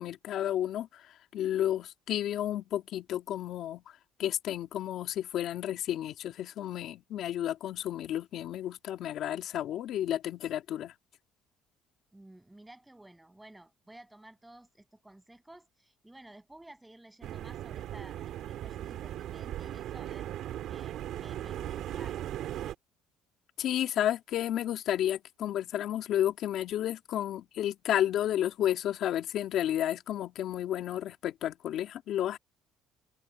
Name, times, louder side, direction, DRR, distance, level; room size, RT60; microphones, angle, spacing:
voice 1, 0.0-10.9 23.6-32.4, left 11 dB, 60° left, 2.7 m, -32 dB
voice 2, 12.1-20.3 20.7-22.2, right 1 dB, 10° right, 7.2 m, -53 dB
sound 1, 17.2-22.8, right 12 dB, 65° right, 3.1 m, -38 dB
cardioid pair, 115°, 0 cm